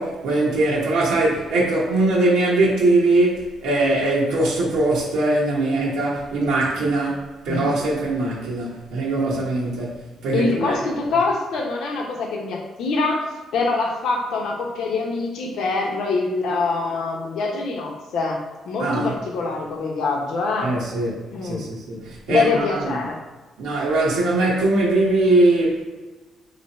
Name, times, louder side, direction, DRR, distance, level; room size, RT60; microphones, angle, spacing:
voice 1, 0.0-10.9 18.8-19.1 20.6-23.0 23.6-25.9, right 2 dB, 90° right, -6 dB, 0.9 m, -21 dB
voice 2, 10.3-13.2 13.5-20.7 21.3-21.6 22.3-23.2, left 3 dB, 75° left, 0 dB, 0.8 m, -24 dB
3.3 x 2.9 x 4.1 m, 1.2 s
cardioid pair, 90°, 0 cm